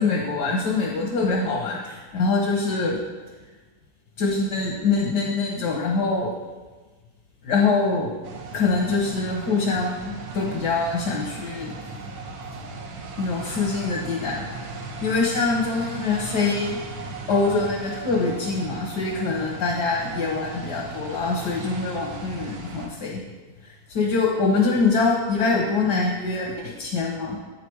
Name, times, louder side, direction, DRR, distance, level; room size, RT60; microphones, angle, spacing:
voice 1, 0.0-3.0 4.2-6.3 7.4-8.1 8.5-11.7 13.2-14.6 15.0-16.8 17.3-23.2 23.6-27.4, left 4 dB, 85° left, -2 dB, 1.7 m, -24 dB
sound 1, 8.2-22.9, right 3 dB, 65° right, 1.4 m, -37 dB
9.2 x 5.9 x 4.7 m, 1.3 s
omnidirectional pair, 1.7 m